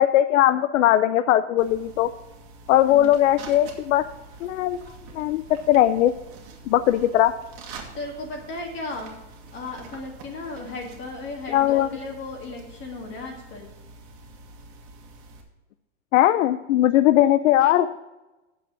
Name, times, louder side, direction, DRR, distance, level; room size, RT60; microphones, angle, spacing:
voice 1, 0.0-2.1 2.7-4.0 4.4-4.8 5.1-5.4 5.7-6.1 6.7-7.3 11.5-11.9 16.1-17.9, left 13 dB, 80° left, 12 dB, 0.6 m, -19 dB
sound 1, 1.6-15.4, right 3 dB, 45° right, 1.9 m, -45 dB
voice 2, 7.9-9.1 9.5-13.7, left 2 dB, 30° left, 1 dB, 1.7 m, -35 dB
8.2 x 7.3 x 5.9 m, 1.0 s
supercardioid pair, 145°, 38 cm